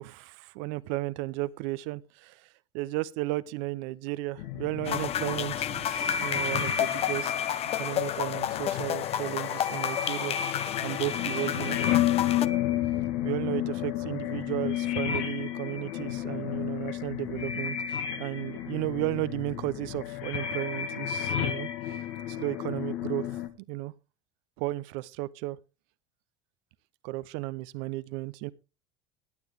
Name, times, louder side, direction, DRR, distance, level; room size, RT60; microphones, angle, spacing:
voice 1, 0.0-2.4 2.7-7.3 7.7-11.8 13.2-21.7 22.3-23.3 23.7-23.9 24.6-25.6 27.0-28.5, right 18 dB, 70° right, 0.8 m, -34 dB
sound 1, 4.4-23.5, left 10 dB, 70° left, 1.8 m, -32 dB
sound 2, 4.8-12.5, left 11 dB, 40° left, 0.7 m, -31 dB
16.5 x 9.6 x 3.5 m
hypercardioid pair, 90°, 16 cm